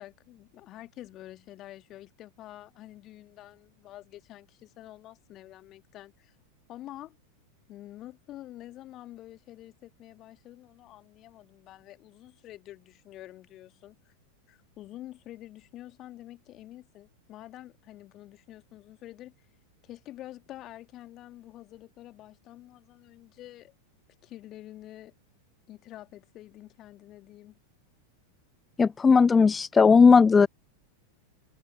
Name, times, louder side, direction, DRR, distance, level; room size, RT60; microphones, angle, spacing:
voice 1, 0.0-6.4 6.7-7.2 7.7-14.1 14.5-19.3 19.8-23.7 24.2-25.1 25.7-27.6, left 14 dB, 35° left, 2.5 m, -47 dB
voice 2, 28.8-30.5, left 5 dB, 15° left, 0.3 m, -17 dB
figure-of-eight pair, 90°, 0 cm